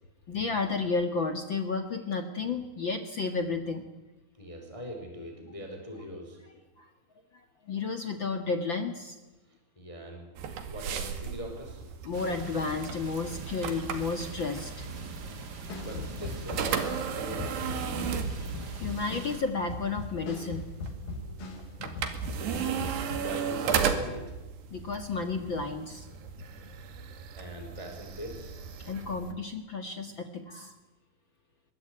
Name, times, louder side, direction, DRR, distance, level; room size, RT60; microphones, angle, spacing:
voice 1, 0.3-3.9 6.8-6.9 7.7-9.1 12.0-14.9 18.3-20.7 21.8-21.9 24.7-26.1 28.8-30.7, left 4 dB, 45° left, 7 dB, 1.6 m, -32 dB
voice 2, 4.3-6.4 9.5-10.4 10.7-11.9 15.1-19.0 21.1-21.4 22.3-24.3 27.4-28.5, equal, 10° left, 3 dB, 4.2 m, -42 dB
sound 1, 10.4-29.3, right 7 dB, 85° right, 4.3 m, -36 dB
sound 2, 12.1-19.4, right 3 dB, 40° right, 1.6 m, -42 dB
sound 3, 15.7-21.7 22.0-23.3, left 3 dB, 65° left, 5.9 m, -39 dB
24.5 x 22.5 x 9.2 m, 1.1 s
omnidirectional pair, 4.7 m